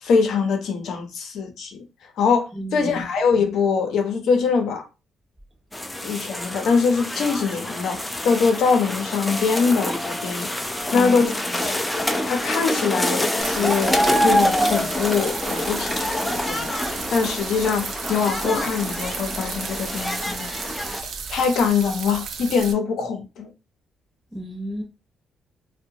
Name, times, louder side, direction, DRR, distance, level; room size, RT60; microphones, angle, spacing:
voice 1, 0.0-1.8 2.2-4.8 6.0-10.5 10.9-11.9 12.2-20.5 21.0-23.5, left 5 dB, 65° left, 0.6 m, -23 dB
voice 2, 2.5-3.1 10.9-11.7 24.3-24.8, equal, 10° right, 0.8 m, -32 dB
sound 1, 5.7-21.0, left 1 dB, 10° left, 0.3 m, -26 dB
sound 2, 13.4-22.7, right 5 dB, 60° right, 0.4 m, -34 dB
2.7 x 2.2 x 2.7 m
cardioid pair, 130°, 0 cm